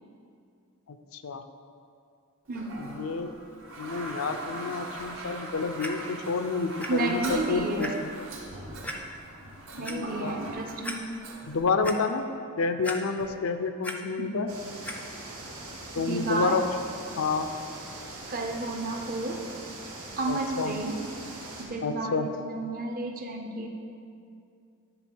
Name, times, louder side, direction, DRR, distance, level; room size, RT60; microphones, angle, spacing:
voice 1, 0.9-1.4 2.8-3.3 3.8-8.1 9.8-10.4 11.5-12.3 12.6-14.5 16.0-16.6 17.2-17.5 20.3-20.7 21.8-22.3, left 4 dB, 65° left, 8 dB, 0.5 m, -29 dB
Toilet flush, 2.5-11.6, right 1 dB, 60° right, 1.0 m, -40 dB
Clock, 5.8-5.9 6.8-6.9 7.3-7.4 7.8-7.9 8.8-9.0 9.6-9.9 10.5-10.6 10.8-11.0 11.4-12.0 12.8-13.4 13.6-14.0 14.8-15.0 15.7-15.8, left 1 dB, 5° left, 0.5 m, -36 dB
voice 2, 6.9-8.0 9.8-11.1 14.2-14.4 15.9-16.6 18.3-19.4 20.2-21.0 21.6-23.7, right 2 dB, 40° right, 3 dB, 0.7 m, -31 dB
sound 1, 14.5-21.6, right 2 dB, 75° right, 1.7 m, -42 dB
9.9 x 3.7 x 6.3 m, 2.5 s
head